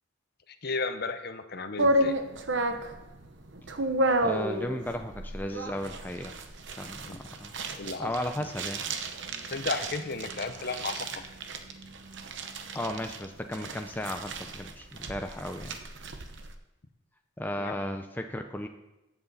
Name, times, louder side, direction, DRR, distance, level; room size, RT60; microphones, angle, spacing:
voice 1, 0.6-2.2 7.1-7.2 7.8-8.1 9.4-11.1 17.6-17.7, left 3 dB, 50° left, 9 dB, 0.9 m, -33 dB
sound 1, 1.8-16.5, right 1 dB, 60° right, 1.0 m, -32 dB
voice 2, 4.2-6.3 6.8-7.5 8.0-8.8 12.7-15.8 17.4-18.7, left 1 dB, 10° left, 5 dB, 0.5 m, -35 dB
14.5 x 8.0 x 4.2 m, 1.0 s
head